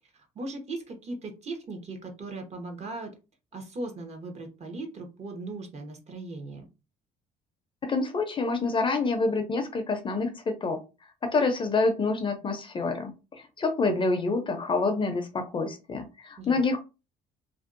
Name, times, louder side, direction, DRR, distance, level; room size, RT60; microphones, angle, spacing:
voice 1, 0.1-3.1 3.5-6.7 16.4-16.8, right 2 dB, 40° right, 3 dB, 0.8 m, -38 dB
voice 2, 7.8-10.8 11.2-13.1 13.6-16.8, left 3 dB, 30° left, 7 dB, 0.5 m, -27 dB
2.5 x 2.1 x 2.5 m, 0.29 s
cardioid pair, 110°, 17 cm